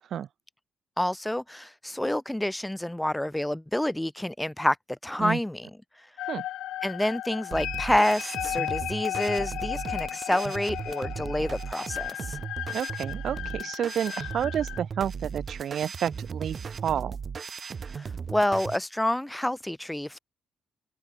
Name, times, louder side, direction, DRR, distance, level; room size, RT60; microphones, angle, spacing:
voice 1, 1.0-4.8 5.0-5.7 6.0-6.1 6.8-12.4 17.9-20.2, left 1 dB, 5° left, 2.2 m, -28 dB
sound 1, 6.2-14.8, left 13 dB, 85° left, 3.0 m, -35 dB
sound 2, 7.5-18.8, right 6 dB, 45° right, 2.2 m, -37 dB
voice 2, 12.7-17.2, right 9 dB, 65° right, 0.8 m, -30 dB
cardioid pair, 90°, 0 cm